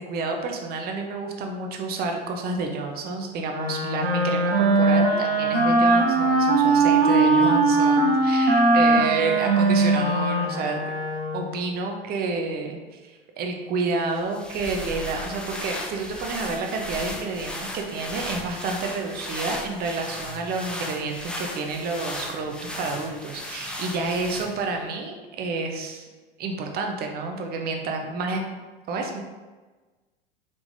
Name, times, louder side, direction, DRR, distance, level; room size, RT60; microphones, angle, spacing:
voice 1, 0.0-10.9 11.3-26.1 26.4-28.4 28.9-29.2, right 3 dB, 30° right, 2 dB, 0.7 m, -30 dB
Wind instrument woodwind instrument, 3.5-11.6, right 3 dB, 90° right, 0.9 m, -20 dB
sound 1, 14.1-24.8, left 1 dB, 5° left, 0.4 m, -36 dB
4.8 x 3.5 x 2.6 m, 1.3 s
hypercardioid pair, 90°, 30 cm